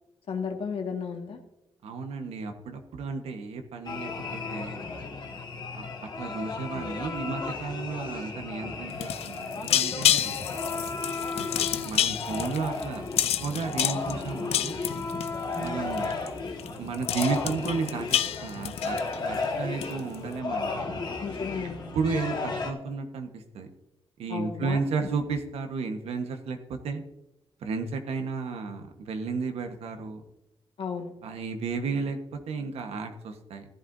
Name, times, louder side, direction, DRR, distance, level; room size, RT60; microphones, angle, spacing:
voice 1, 0.3-1.4 21.2-21.9 24.3-25.1 30.8-31.1, left 6 dB, 70° left, 3 dB, 1.8 m, -34 dB
voice 2, 1.8-4.8 5.7-5.9 6.2-10.4 11.3-13.0 13.4-14.8 15.6-16.1 16.8-21.0 21.9-23.7 24.2-27.0 27.6-30.2 31.2-33.6, right 4 dB, 90° right, 6 dB, 1.3 m, -33 dB
sound 1, 3.8-22.7, left 3 dB, 45° left, 2.0 m, -34 dB
sound 2, 8.9-15.7 16.0-16.3 16.6-16.7 16.9-19.4 19.8-20.1, left 11 dB, 90° left, 0.5 m, -28 dB
15.0 x 10.5 x 2.7 m, 0.93 s
cardioid pair, 100°, 10 cm